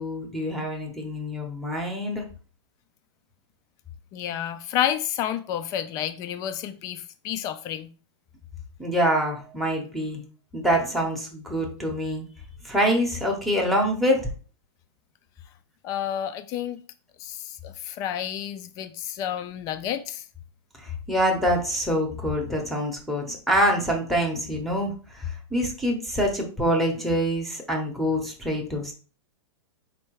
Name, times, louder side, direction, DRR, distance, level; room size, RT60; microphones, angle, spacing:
voice 1, 0.0-2.2 8.8-10.2 10.5-12.2 12.6-14.3 20.8-28.9, equal, ahead, 0.8 m, -25 dB
voice 2, 4.1-7.9 15.8-16.8 17.2-20.2, left 10 dB, 25° left, 0.3 m, -30 dB
4.5 x 2.2 x 4.5 m
hypercardioid pair, 150°, 15 cm